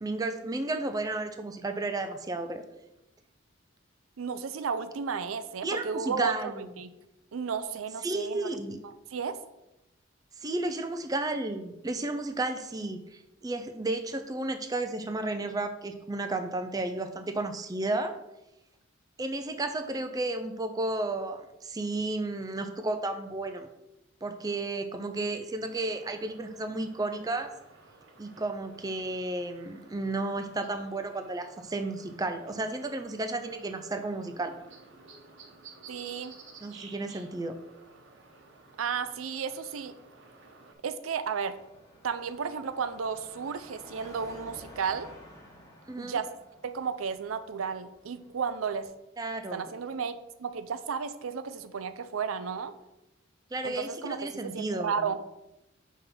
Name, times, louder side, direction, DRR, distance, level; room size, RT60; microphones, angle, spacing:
voice 1, 0.0-2.6 5.6-6.7 8.0-8.8 10.4-18.2 19.2-23.7 24.2-27.5 28.2-34.5 36.6-37.6 45.9-46.2 49.2-49.7 53.5-55.0, right 2 dB, 20° right, 7 dB, 0.4 m, -33 dB
voice 2, 4.2-6.9 7.3-8.5 8.8-9.4 35.9-36.4 38.8-39.9 40.8-41.6 42.0-45.1 46.0-46.3 46.6-48.9 49.5-52.7 53.6-55.2, right 6 dB, 85° right, 11 dB, 0.5 m, -33 dB
sound 1, 25.6-40.7, right 4 dB, 60° right, 1.0 m, -54 dB
Car passing by / Traffic noise roadway noise / Engine, 41.5-48.9, left 1 dB, 15° left, 1.2 m, -52 dB
5.3 x 3.6 x 5.8 m, 0.92 s
head